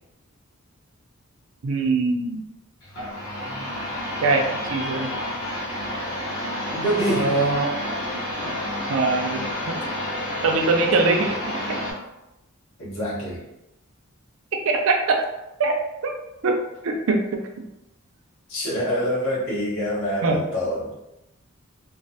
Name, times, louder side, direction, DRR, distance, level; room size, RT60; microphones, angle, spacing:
voice 1, 1.6-2.4 4.2-4.4 4.7-5.1 7.1-7.7 8.9-9.5 10.4-11.6 14.6-15.2 15.6-16.1 16.4-16.6 16.8-17.4 20.2-20.4, right 3 dB, 60° right, 3 dB, 0.4 m, -22 dB
sound 1, 2.8-11.9, left 1 dB, 50° left, 0.9 m, -30 dB
voice 2, 6.7-7.5 12.8-13.4 18.5-20.9, equal, 65° left, -8 dB, 1.1 m, -26 dB
3.0 x 2.0 x 2.7 m, 0.91 s
head